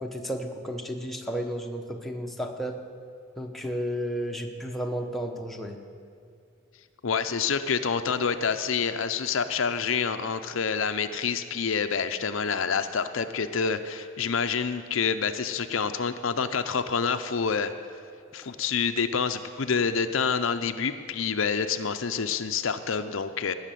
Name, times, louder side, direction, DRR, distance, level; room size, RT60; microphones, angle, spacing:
voice 1, 0.0-2.8 3.4-5.8, equal, ahead, 1 dB, 1.0 m, -32 dB
voice 2, 7.0-17.7 18.3-23.5, left 6 dB, 70° left, 9 dB, 0.6 m, -27 dB
18.5 x 6.6 x 9.2 m, 2.4 s
head